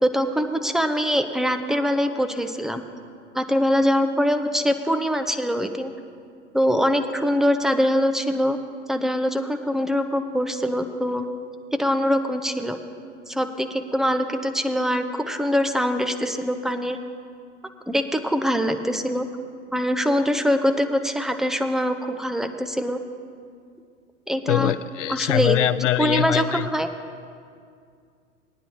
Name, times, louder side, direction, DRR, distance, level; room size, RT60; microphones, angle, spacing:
voice 1, 0.0-2.8 3.3-5.9 6.5-8.6 8.9-11.3 11.7-12.8 13.3-17.0 17.9-19.3 19.7-23.0 24.3-24.7 25.1-25.6 26.0-26.9, equal, ahead, 7 dB, 0.6 m, -23 dB
voice 2, 24.5-26.7, left 12 dB, 80° left, 16 dB, 0.6 m, -23 dB
19.5 x 10.0 x 2.8 m, 2.2 s
hypercardioid pair, 95°, 36 cm